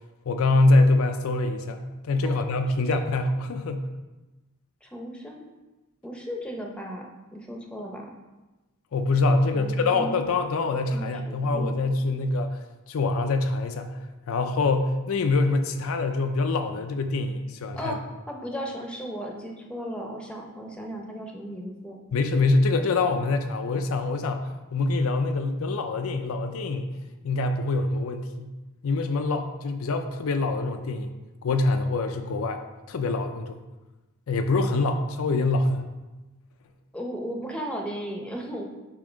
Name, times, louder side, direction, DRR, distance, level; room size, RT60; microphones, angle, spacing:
voice 1, 0.3-3.9 8.9-12.6 12.9-18.0 22.1-26.9 27.2-28.5 28.8-31.2 31.4-32.6 32.9-33.6 34.3-35.9, left 3 dB, 70° left, 6 dB, 0.4 m, -25 dB
voice 2, 4.8-5.4 6.0-7.1 7.3-8.1 9.5-10.2 10.9-11.8 17.8-18.0 18.3-22.0 22.8-22.9 36.9-38.6, equal, 5° left, 1 dB, 0.7 m, -35 dB
7.1 x 2.8 x 5.0 m, 1.1 s
head